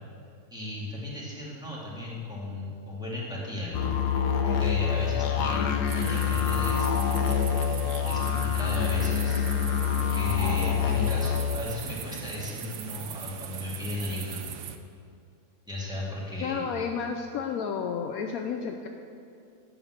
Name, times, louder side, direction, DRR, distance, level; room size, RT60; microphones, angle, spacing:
voice 1, 0.5-3.9 4.4-7.2 8.1-9.4 10.1-14.4 15.7-16.6, left 1 dB, ahead, -7 dB, 2.3 m, -36 dB
sound 1, 3.7-11.6, left 8 dB, 90° left, 1.3 m, -26 dB
sound 2, 5.9-14.8, right 9 dB, 65° right, 0.9 m, -39 dB
voice 2, 16.4-18.9, left 6 dB, 70° left, 3 dB, 1.0 m, -31 dB
12.5 x 4.3 x 8.1 m, 2.4 s
omnidirectional pair, 1.7 m